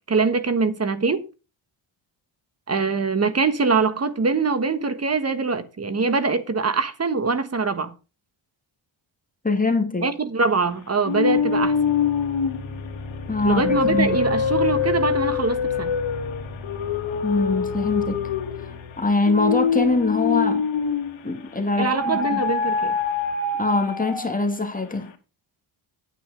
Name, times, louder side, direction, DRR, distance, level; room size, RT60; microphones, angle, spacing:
voice 1, 0.1-1.2 2.7-7.9 10.0-11.8 13.4-15.9 21.8-22.9, right 4 dB, 30° right, 1.3 m, -23 dB
voice 2, 9.4-10.1 13.3-14.2 17.2-18.3 18.6-20.7 21.2-22.4 23.6-25.1, left 3 dB, 15° left, 2.2 m, -23 dB
sound 1, 11.0-21.3 21.8-24.5, left 6 dB, 70° left, 2.4 m, -25 dB
9.4 x 9.0 x 5.1 m
cardioid pair, 110°, 48 cm